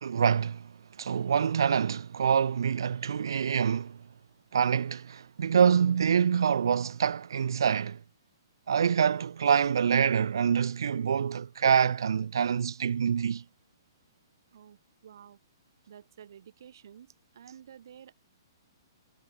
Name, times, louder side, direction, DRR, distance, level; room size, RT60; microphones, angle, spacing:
voice 1, 0.0-0.7 1.0-4.0 4.5-8.0 8.7-13.4, right 7 dB, 75° right, 0.8 m, -26 dB
voice 2, 14.5-15.4 15.9-18.1, right 9 dB, 55° right, 2.1 m, -51 dB
hypercardioid pair, 170°, 2 cm